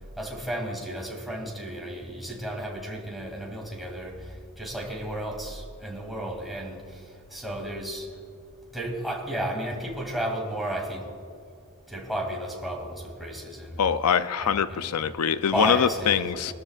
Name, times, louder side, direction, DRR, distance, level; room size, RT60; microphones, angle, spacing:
voice 1, 0.2-8.1 8.7-11.1 11.9-13.9 14.4-14.9 15.5-16.5, right 1 dB, ahead, -2 dB, 2.4 m, -33 dB
voice 2, 13.8-16.5, left 7 dB, 85° left, 12 dB, 0.5 m, -24 dB
23.0 x 13.5 x 2.4 m, 2.3 s
head